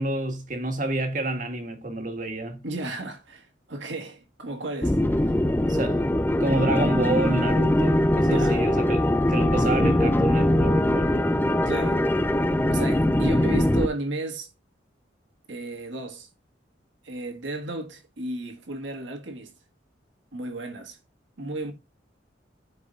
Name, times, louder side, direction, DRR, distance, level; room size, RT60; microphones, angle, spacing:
voice 1, 0.0-2.7 5.6-6.1 6.4-11.3 21.4-21.7, right 1 dB, 45° right, 1.7 m, -29 dB
voice 2, 2.6-5.3 8.2-8.6 11.7-12.0 12.7-14.5 15.5-16.3 17.0-19.5 20.3-21.0 21.4-21.7, right 2 dB, 85° right, 1.8 m, -34 dB
sound 1, 4.8-13.9, left 1 dB, 10° left, 0.4 m, -22 dB
14.5 x 4.9 x 2.5 m
head